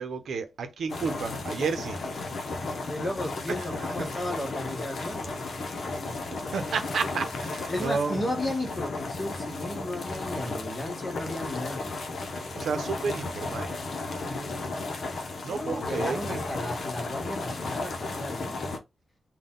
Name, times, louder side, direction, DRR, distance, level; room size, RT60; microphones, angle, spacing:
voice 1, 0.0-2.0 3.8-4.1 5.9-6.0 6.3-8.2 12.5-13.7 15.4-16.4, right 5 dB, 80° right, 0.8 m, -31 dB
sound 1, 0.9-18.8, left 3 dB, 55° left, 0.8 m, -34 dB
voice 2, 2.9-5.4 5.7-6.1 7.7-12.0 14.2-14.6 15.4-18.6, left 1 dB, 25° left, 1.4 m, -34 dB
3.8 x 2.3 x 3.8 m
wide cardioid pair, 175°, 0 cm